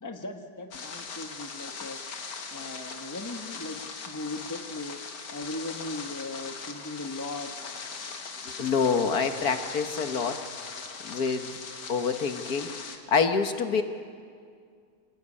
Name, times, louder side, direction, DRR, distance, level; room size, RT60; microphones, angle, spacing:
voice 1, 0.0-2.2 2.5-5.0 5.3-7.5, left 2 dB, 10° left, 5 dB, 1.1 m, -38 dB
sound 1, 0.7-13.0, left 5 dB, 90° left, 2.3 m, -40 dB
voice 2, 8.5-10.4 11.0-11.5 11.9-13.8, left 5 dB, 65° left, 7 dB, 1.8 m, -27 dB
27.0 x 18.5 x 9.8 m, 2.2 s
omnidirectional pair, 1.8 m